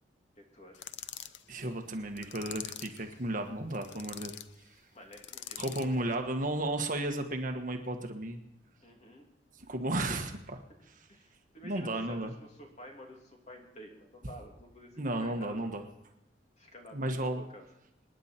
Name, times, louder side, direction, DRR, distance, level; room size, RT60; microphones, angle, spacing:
voice 1, 0.4-0.9 4.9-6.0 8.8-9.3 11.1-15.7 16.6-17.7, equal, 40° left, 1 dB, 2.9 m, -51 dB
sound 1, 0.7-1.4 2.2-3.0 3.7-4.5 5.1-5.9, left 10 dB, 75° left, 0.7 m, -44 dB
voice 2, 1.5-4.3 5.6-8.4 9.7-10.6 11.6-12.3 15.0-15.8 16.9-17.4, right 1 dB, 45° right, 5 dB, 1.4 m, -33 dB
26.5 x 10.0 x 4.4 m, 0.85 s
head